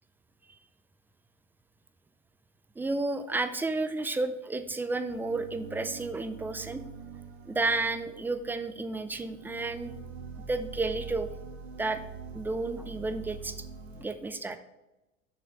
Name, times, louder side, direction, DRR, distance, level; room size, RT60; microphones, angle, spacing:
voice 1, 2.8-6.8 7.5-10.0 10.4-11.3 11.8-12.0 12.3-13.6 14.0-14.6, right 3 dB, 5° right, 10 dB, 0.3 m, -32 dB
sound 1, 5.1-14.1, right 5 dB, 55° right, 1.4 m, -44 dB
7.0 x 6.1 x 4.1 m, 1.0 s
figure-of-eight pair, 80°, 40 cm